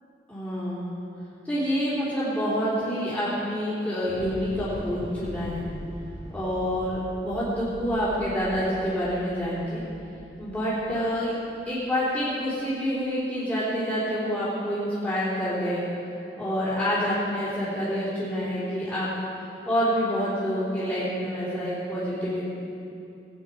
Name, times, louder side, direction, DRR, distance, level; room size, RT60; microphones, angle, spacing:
voice 1, 0.3-0.9 1.5-5.7 6.3-9.8 10.4-11.3 11.7-15.8 16.4-19.1 19.7-22.4, equal, 10° left, -11 dB, 3.6 m, -27 dB
Thunder / Explosion, 4.0-12.3, equal, 30° right, 2.3 m, -42 dB
19.0 x 9.4 x 5.5 m, 2.8 s
head